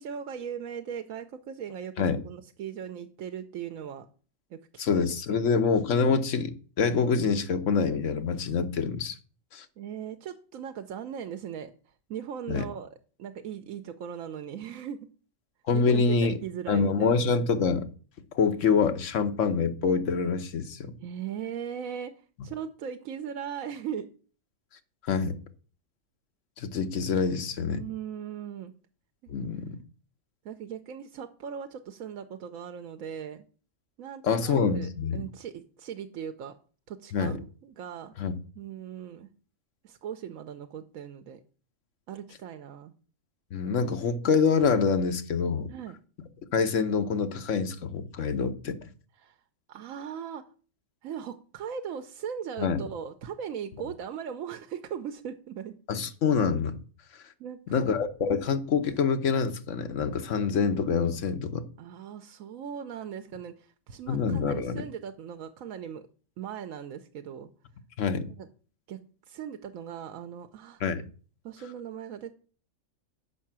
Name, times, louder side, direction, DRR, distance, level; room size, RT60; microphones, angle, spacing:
voice 1, 0.0-4.1 4.5-4.6 4.9-5.0 5.4-5.6 9.8-11.7 12.1-12.9 13.2-15.0 15.7-17.1 21.0-22.1 22.4-24.1 27.6-28.7 30.4-33.4 34.0-36.5 36.9-38.1 38.6-39.3 39.8-41.4 42.1-42.9 45.7-45.9 49.2-49.4 49.7-50.4 51.0-55.8 57.4-58.0 61.8-66.0 66.4-67.5 68.4-68.5 68.9-69.0 69.3-70.8 71.4-72.3, right 8 dB, 85° right, 1.1 m, -38 dB
voice 2, 4.8-9.2 9.5-9.6 12.5-12.6 15.7-16.3 16.7-17.9 18.3-20.9 25.1-25.4 26.6-27.8 29.3-29.8 34.2-35.2 37.1-37.4 38.2-38.3 43.5-45.7 46.5-48.8 52.6-52.8 55.9-56.8 57.7-61.6 64.1-64.8 68.0-68.3 70.8-71.0, left 5 dB, 70° left, 1.3 m, -26 dB
6.9 x 5.6 x 7.3 m
omnidirectional pair, 1.4 m